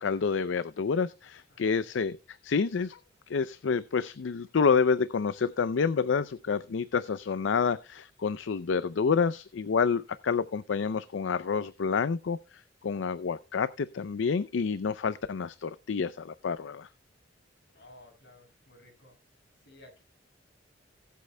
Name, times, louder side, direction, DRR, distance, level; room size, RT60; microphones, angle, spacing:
voice 1, 0.0-2.2 2.4-3.0 3.3-16.9, left 5 dB, 80° left, 15 dB, 0.5 m, -28 dB
voice 2, 1.5-1.9 17.7-19.1 19.6-20.0, left 1 dB, 65° left, 2 dB, 6.2 m, -55 dB
19.0 x 8.4 x 2.2 m, 0.30 s
head